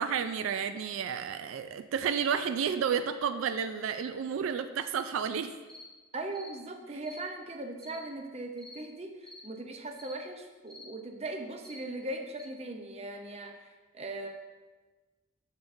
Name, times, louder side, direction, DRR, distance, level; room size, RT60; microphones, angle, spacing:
voice 1, 0.0-5.5, right 7 dB, 80° right, 10 dB, 0.3 m, -31 dB
sound 1, 5.7-5.9 6.3-6.5 7.0-7.2 7.8-8.0 8.6-8.8 9.2-9.5 10.0-10.2 10.7-10.9 11.6-11.8 12.4-12.5, left 2 dB, ahead, 0.8 m, -49 dB
voice 2, 6.1-13.6 13.9-14.3, right 2 dB, 30° right, 4 dB, 0.6 m, -39 dB
7.3 x 7.2 x 2.6 m, 1.3 s
head